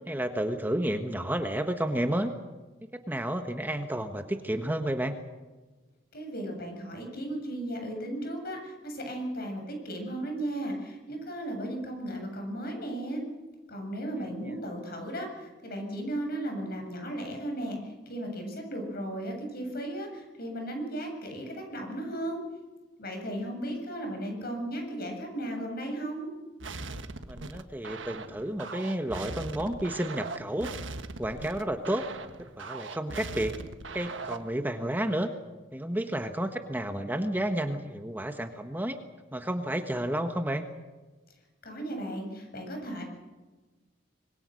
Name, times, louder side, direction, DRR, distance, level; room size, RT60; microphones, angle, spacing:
voice 1, 0.1-2.3 3.1-5.2 27.3-30.7 31.2-32.0 32.6-33.5 33.9-35.3 35.7-39.0 39.3-40.6, right 1 dB, 10° right, 6 dB, 1.3 m, -31 dB
voice 2, 6.1-13.2 13.7-22.4 23.0-26.3 41.6-43.0, right 1 dB, 55° left, 3 dB, 7.7 m, -35 dB
sound 1, 26.6-34.6, right 3 dB, 90° right, 1.4 m, -40 dB
26.0 x 22.0 x 6.5 m, 1.3 s
head